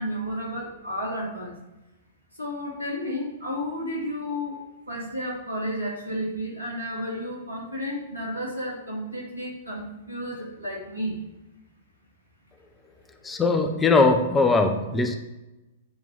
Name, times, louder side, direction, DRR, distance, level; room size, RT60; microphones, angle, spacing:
voice 1, 0.0-1.6 2.4-11.2, equal, 85° right, -3 dB, 2.7 m, -32 dB
voice 2, 13.2-15.1, left 3 dB, 15° left, 6 dB, 0.8 m, -20 dB
9.9 x 4.6 x 5.4 m, 1.0 s
figure-of-eight pair, 105°, 0 cm